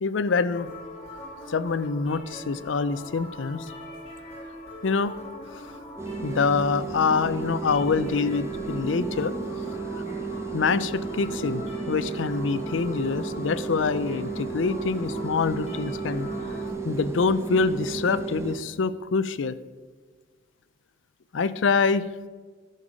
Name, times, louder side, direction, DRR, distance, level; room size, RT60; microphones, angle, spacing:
voice 1, 0.0-0.7 1.5-3.7 4.8-5.1 6.2-9.3 10.5-16.3 16.8-19.6 21.3-22.1, left 4 dB, 85° left, 15 dB, 0.5 m, -25 dB
sound 1, 0.5-16.7, left 1 dB, 35° left, 2.6 m, -42 dB
sound 2, 6.0-18.6, right 4 dB, 15° right, 0.9 m, -33 dB
11.0 x 6.7 x 5.0 m, 1.5 s
head